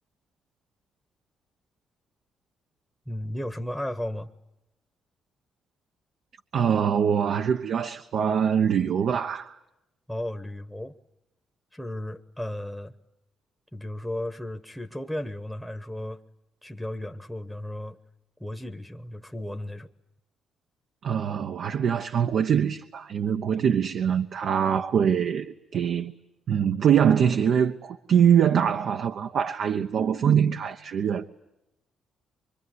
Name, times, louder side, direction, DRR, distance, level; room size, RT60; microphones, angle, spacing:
voice 1, 3.1-4.3 10.1-10.9 11.7-13.0 13.7-16.2 16.6-18.0 18.4-19.9, left 1 dB, ahead, 1.1 m, -34 dB
voice 2, 6.5-9.6 21.0-26.1 26.5-31.2, right 8 dB, 65° right, 0.9 m, -23 dB
25.0 x 24.0 x 9.6 m
cardioid pair, 90°, 0 cm